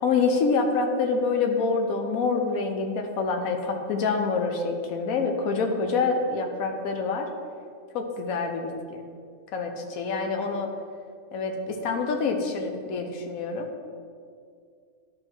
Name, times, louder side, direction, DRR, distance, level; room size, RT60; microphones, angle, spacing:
voice 1, 0.0-7.3 7.9-9.0 9.5-10.7 11.3-13.7, left 4 dB, 70° left, 4 dB, 1.2 m, -26 dB
11.5 x 4.3 x 4.5 m, 2.2 s
omnidirectional pair, 1.6 m